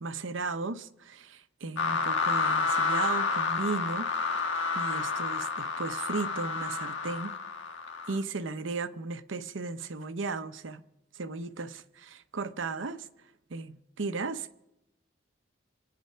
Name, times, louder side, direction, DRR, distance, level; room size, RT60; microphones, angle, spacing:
voice 1, 0.0-4.1 4.7-7.4 8.1-10.8 11.1-13.1 13.5-14.6, right 3 dB, 80° right, 0.8 m, -35 dB
sound 1, 1.8-8.2, left 4 dB, 80° left, 1.3 m, -30 dB
27.0 x 9.5 x 5.6 m
head